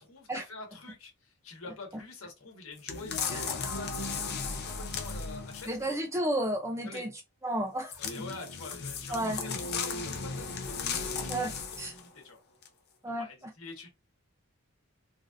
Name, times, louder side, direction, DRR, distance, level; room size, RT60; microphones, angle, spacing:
voice 1, 0.0-6.0 6.8-7.0 8.0-11.5 11.8-12.4 13.1-13.9, left 3 dB, 65° left, 1.1 m, -46 dB
sound 1, 2.9-5.9 7.9-12.1 12.6-12.7, left 5 dB, 45° left, 0.6 m, -35 dB
voice 2, 5.7-7.1 7.4-8.0 9.1-9.4 11.3-11.5 11.8-11.9 13.0-13.5, right 1 dB, 15° right, 0.4 m, -32 dB
3.2 x 2.5 x 2.5 m
head